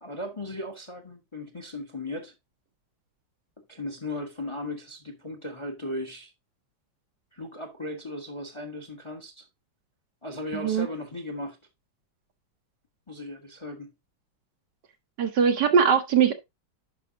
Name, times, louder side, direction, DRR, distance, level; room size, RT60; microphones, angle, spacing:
voice 1, 0.0-2.3 3.7-6.3 7.3-9.5 10.2-11.6 13.1-13.9, left 1 dB, 20° left, 1.0 m, -36 dB
voice 2, 10.5-10.9 15.2-16.4, right 7 dB, 65° right, 1.3 m, -21 dB
10.5 x 5.5 x 2.8 m
omnidirectional pair, 2.2 m